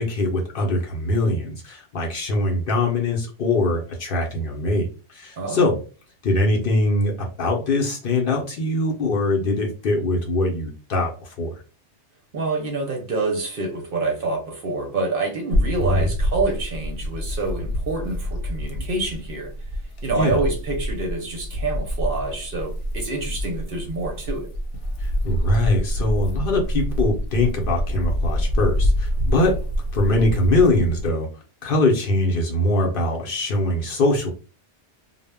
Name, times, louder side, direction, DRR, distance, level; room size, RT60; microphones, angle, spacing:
voice 1, 0.0-5.8 6.2-11.6 15.8-16.1 18.7-18.8 20.2-20.4 25.0-29.6 29.9-31.3 31.6-34.3, left 2 dB, 60° left, 0.7 m, -22 dB
voice 2, 5.4-5.7 12.3-19.5 20.0-24.5, right 3 dB, 60° right, 0.7 m, -27 dB
sound 1, 15.5-31.1, equal, 80° left, 0.9 m, -26 dB
2.0 x 2.0 x 3.3 m
omnidirectional pair, 1.2 m